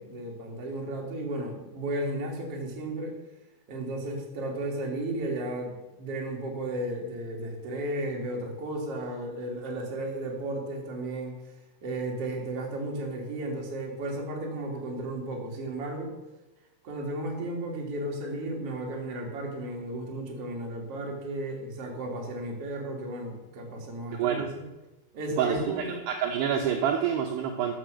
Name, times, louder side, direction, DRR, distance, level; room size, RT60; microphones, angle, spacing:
voice 1, 0.0-3.2 3.7-11.3 11.8-16.1 16.8-24.6 25.1-26.0, right 1 dB, 40° right, 0 dB, 2.5 m, -34 dB
voice 2, 24.1-24.5 25.4-27.7, right 8 dB, 75° right, 3 dB, 2.7 m, -27 dB
13.5 x 7.7 x 6.3 m, 1.0 s
omnidirectional pair, 5.6 m